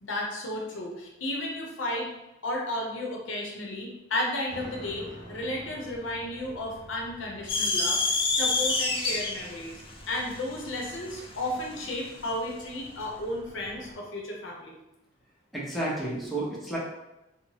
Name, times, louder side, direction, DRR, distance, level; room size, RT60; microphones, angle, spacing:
voice 1, 0.0-2.1 2.4-8.0 8.3-9.8 10.1-14.8, left 1 dB, 90° left, -1 dB, 0.6 m, -33 dB
sound 1, 4.5-14.0, right 1 dB, 35° right, 0.8 m, -49 dB
sound 2, 7.5-12.0, left 3 dB, 30° left, 0.3 m, -28 dB
voice 2, 15.5-16.8, right 1 dB, ahead, -7 dB, 0.7 m, -31 dB
3.0 x 2.0 x 2.8 m, 0.91 s
head